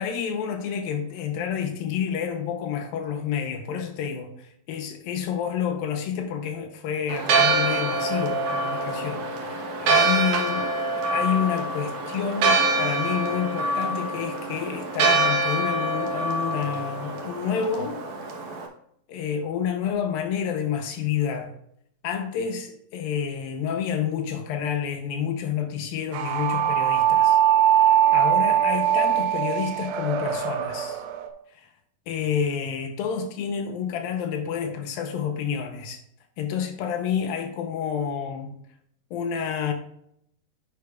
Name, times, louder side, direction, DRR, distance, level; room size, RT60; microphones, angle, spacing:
voice 1, 0.0-10.6 11.0-18.1 19.1-21.5 22.0-27.4 27.6-31.0 31.5-31.7 32.1-36.0 36.4-38.5 39.1-39.7, left 7 dB, 75° left, 2.3 m, -29 dB
Church bell, 7.1-18.7, right 2 dB, 65° right, 2.0 m, -25 dB
sound 1, 26.1-31.3, right 10 dB, 90° right, 2.9 m, -21 dB
9.7 x 8.6 x 2.4 m
omnidirectional pair, 4.9 m